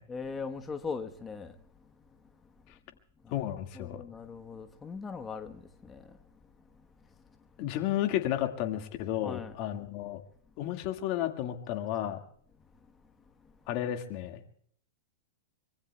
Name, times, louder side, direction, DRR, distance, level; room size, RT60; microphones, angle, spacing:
voice 1, 0.1-1.9 3.2-3.3 3.7-6.2 7.0-7.4 9.2-9.6 13.4-13.5, left 5 dB, 15° left, 1.1 m, -40 dB
voice 2, 3.3-4.0 7.6-10.2 10.6-12.2 13.7-14.4, left 12 dB, 50° left, 1.8 m, -32 dB
24.5 x 24.0 x 2.3 m
hypercardioid pair, 110°, 0 cm